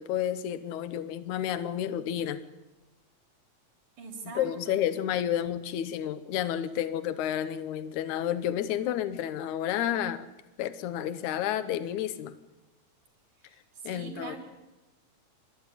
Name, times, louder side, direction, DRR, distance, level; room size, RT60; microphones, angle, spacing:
voice 1, 0.0-2.4 4.4-10.3 10.6-12.4 13.8-14.4, left 10 dB, 85° left, 12 dB, 2.3 m, -30 dB
voice 2, 4.0-4.8 13.5-14.4, right 4 dB, 90° right, 2 dB, 5.1 m, -42 dB
27.5 x 13.5 x 9.8 m, 1.1 s
omnidirectional pair, 3.3 m